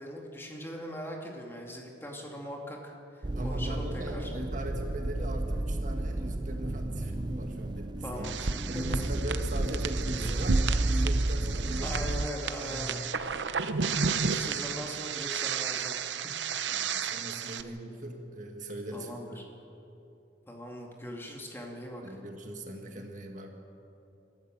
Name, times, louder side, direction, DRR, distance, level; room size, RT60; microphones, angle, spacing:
voice 1, 0.0-4.3 8.0-8.5 8.7-9.0 11.8-13.0 14.2-16.0 18.9-19.4 20.5-22.2, equal, 15° left, 0 dB, 2.3 m, -40 dB
sound 1, 3.2-12.3, right 2 dB, 25° right, 0.5 m, -32 dB
voice 2, 3.3-10.6 10.9-12.1 12.5-13.0 16.7-19.4 22.0-23.5, right 1 dB, 45° right, 3 dB, 1.8 m, -39 dB
sound 2, 8.2-17.6, right 5 dB, 75° right, 0.8 m, -32 dB
27.0 x 13.0 x 7.6 m, 2.8 s
head